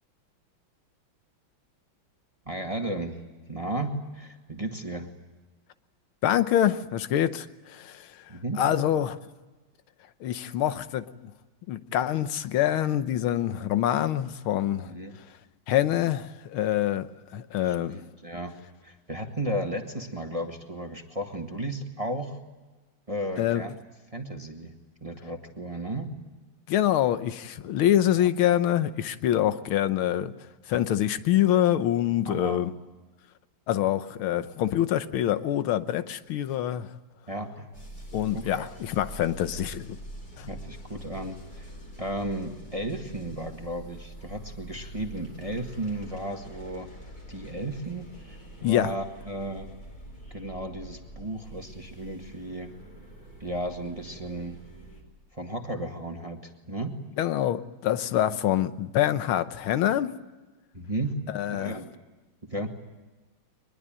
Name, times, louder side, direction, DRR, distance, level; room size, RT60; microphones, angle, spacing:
voice 1, 2.4-3.2 3.5-5.1 8.3-8.6 14.8-15.1 17.6-18.5 18.8-22.4 23.1-23.7 24.1-24.7 25.0-26.1 28.2-28.3 32.2-32.6 37.3-37.7 38.3-38.7 40.5-41.7 42.0-46.9 47.3-49.7 50.3-52.7 53.4-54.6 55.3-56.9 58.3-58.4 60.7-61.2 61.5-61.9 62.5-62.7, right 1 dB, 15° right, 1.7 m, -34 dB
voice 2, 6.2-8.1 8.6-9.2 10.2-11.3 11.7-14.9 15.7-18.0 23.4-23.6 26.7-30.3 30.7-32.7 33.7-36.9 38.1-40.0 40.4-40.5 48.6-48.9 57.2-60.1 61.3-61.8, left 11 dB, 80° left, 1.8 m, -25 dB
sound 1, 37.7-55.0, right 1 dB, 45° left, 5.0 m, -45 dB
23.0 x 21.0 x 8.9 m
omnidirectional pair, 2.3 m